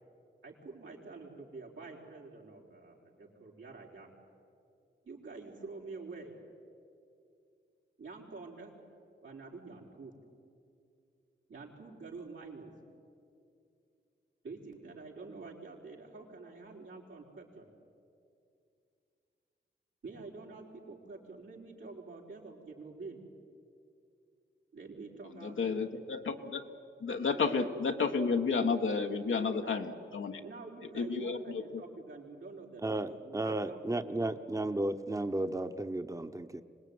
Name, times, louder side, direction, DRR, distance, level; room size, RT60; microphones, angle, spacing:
voice 1, 0.4-4.1 5.0-6.3 8.0-8.7 9.2-10.1 11.5-12.7 14.4-17.7 20.0-23.2 24.7-26.0 29.5-29.9 30.4-34.4, right 3 dB, 85° right, -3 dB, 4.6 m, -47 dB
voice 2, 25.4-26.6 27.0-30.4 30.9-31.6, left 4 dB, 85° left, 4 dB, 1.5 m, -31 dB
voice 3, 32.8-36.6, right 1 dB, 15° right, 8 dB, 1.1 m, -34 dB
25.0 x 19.5 x 9.6 m, 2.5 s
cardioid pair, 45°, 20 cm